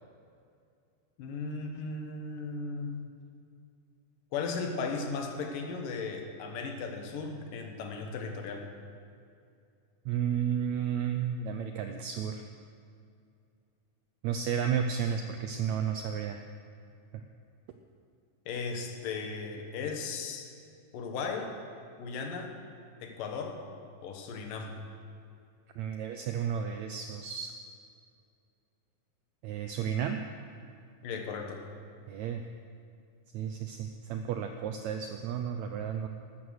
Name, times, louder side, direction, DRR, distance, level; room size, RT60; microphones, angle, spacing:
voice 1, 1.2-3.0 4.3-8.6 18.5-20.5 20.9-21.5 22.0-22.5 23.0-23.6 24.0-24.7 31.0-31.6, left 4 dB, 80° left, 3 dB, 3.0 m, -36 dB
voice 2, 10.0-12.5 14.2-16.4 25.8-27.5 29.4-30.2 32.1-32.4 33.3-36.1, right 8 dB, 85° right, 6 dB, 1.6 m, -32 dB
13.0 x 12.5 x 6.4 m, 2.4 s
omnidirectional pair, 3.9 m